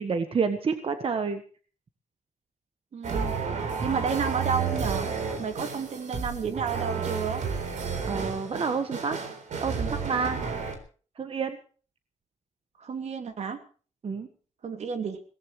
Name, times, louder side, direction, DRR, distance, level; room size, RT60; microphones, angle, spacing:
voice 1, 0.0-1.4 8.0-9.2 9.6-10.4 11.2-11.6 14.0-14.3, right 5 dB, 50° right, 8 dB, 1.5 m, -29 dB
voice 2, 2.9-3.3 3.8-5.1 5.4-7.4 12.8-13.6 14.6-15.2, right 5 dB, 65° right, 7 dB, 2.6 m, -31 dB
sound 1, 3.0-10.8, right 5 dB, 85° right, 3.9 m, -31 dB
22.0 x 18.0 x 3.2 m, 0.40 s
cardioid pair, 105°, 12 cm